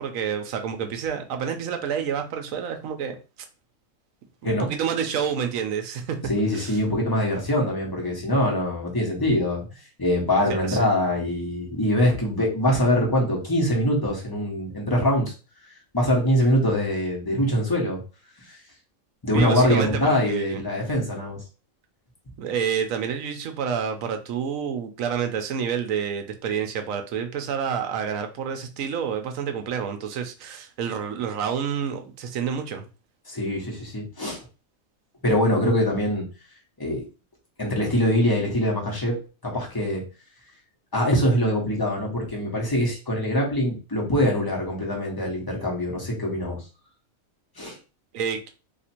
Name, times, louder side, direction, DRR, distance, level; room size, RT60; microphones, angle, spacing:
voice 1, 0.0-3.1 4.4-6.2 6.5-6.8 10.7-10.8 19.3-20.6 22.4-32.9 48.1-48.5, right 7 dB, 75° right, 6 dB, 1.0 m, -28 dB
voice 2, 6.3-9.6 10.0-15.3 15.9-18.0 18.5-18.6 19.2-21.4 33.3-34.4 35.2-36.3 36.8-37.1 37.6-40.0 40.9-46.6 47.6-47.8, left 1 dB, 15° left, -2 dB, 1.0 m, -23 dB
2.8 x 2.5 x 4.3 m, 0.32 s
omnidirectional pair, 1.5 m